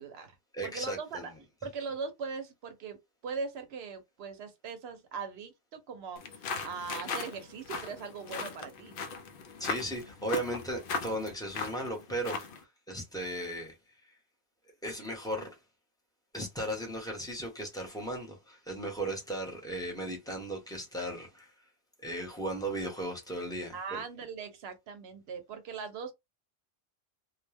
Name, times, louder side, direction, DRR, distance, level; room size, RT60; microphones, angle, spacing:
voice 1, 0.0-0.4 0.6-1.3 1.6-3.0 3.2-9.0 23.7-26.1, right 5 dB, 75° right, 0.9 m, -40 dB
voice 2, 0.5-1.3 9.6-12.4 12.9-13.7 14.8-15.5 16.3-21.5 22.0-24.0, right 1 dB, 5° left, 0.9 m, -36 dB
sound 1, 6.2-12.6, left 4 dB, 65° left, 0.7 m, -38 dB
2.3 x 2.1 x 3.3 m
omnidirectional pair, 1.1 m